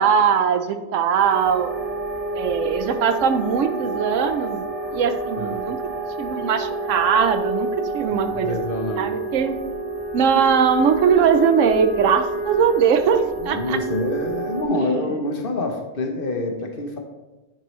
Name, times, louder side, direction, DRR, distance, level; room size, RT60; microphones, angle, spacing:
voice 1, 0.0-1.7 2.3-4.6 4.9-5.8 6.2-7.7 7.9-8.6 9.0-9.6 10.1-13.8 14.8-14.9, right 7 dB, 85° right, 8 dB, 1.0 m, -20 dB
sound 1, 1.2-14.6, right 3 dB, 10° right, 1.3 m, -29 dB
voice 2, 8.1-9.1 13.4-17.0, left 2 dB, 50° left, 3 dB, 1.0 m, -27 dB
10.5 x 4.6 x 3.1 m, 1.1 s
omnidirectional pair, 1.3 m